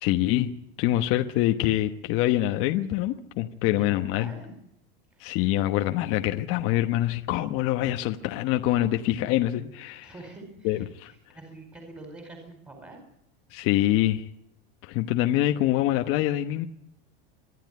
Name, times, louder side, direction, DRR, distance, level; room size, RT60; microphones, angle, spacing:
voice 1, 0.0-0.5 0.8-4.3 5.2-10.1 10.6-11.1 13.5-14.3 14.8-16.7, left 14 dB, 45° left, 6 dB, 1.1 m, -25 dB
voice 2, 3.8-4.5 5.1-5.3 10.0-13.0, right 2 dB, 10° right, 2 dB, 4.7 m, -46 dB
25.0 x 11.5 x 9.4 m, 0.78 s
supercardioid pair, 150°, 30 cm